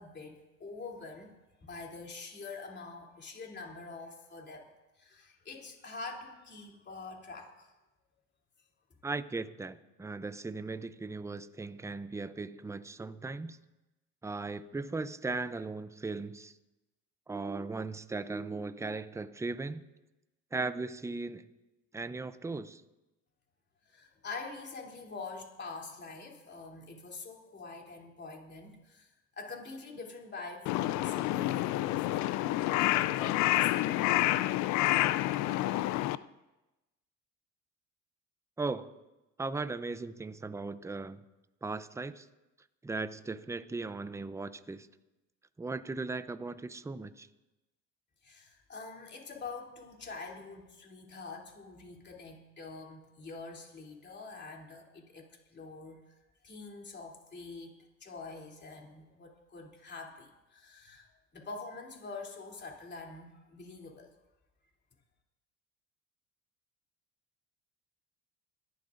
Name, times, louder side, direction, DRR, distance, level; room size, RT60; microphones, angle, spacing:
voice 1, 0.0-1.3 1.6-4.7 5.0-7.7 23.9-29.1 29.4-32.2 32.8-34.4 48.2-56.0 56.4-64.1, left 3 dB, 30° left, 0 dB, 3.1 m, -45 dB
voice 2, 9.0-13.6 14.2-16.5 17.3-19.8 20.5-21.5 21.9-22.8 38.6-38.9 39.4-41.2 41.6-42.3 42.8-44.9 45.6-47.3, right 3 dB, 10° right, 13 dB, 0.6 m, -37 dB
Crow, 30.7-36.2, left 15 dB, 60° left, 0.5 m, -28 dB
29.0 x 11.5 x 2.6 m, 1.0 s
supercardioid pair, 85°, 34 cm